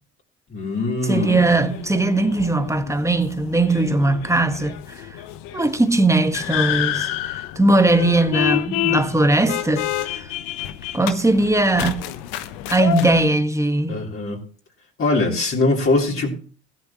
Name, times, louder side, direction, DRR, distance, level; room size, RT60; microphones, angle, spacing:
voice 1, 0.5-1.5 13.9-14.4 15.0-16.3, left 2 dB, 40° left, 3.6 m, -22 dB
sound 1, 1.1-13.2, left 13 dB, 75° left, 1.0 m, -29 dB
voice 2, 1.1-5.1 5.5-10.3 10.9-12.1 12.7-14.1, right 2 dB, 10° right, 1.5 m, -19 dB
15.5 x 12.0 x 3.0 m
hypercardioid pair, 65°, 33 cm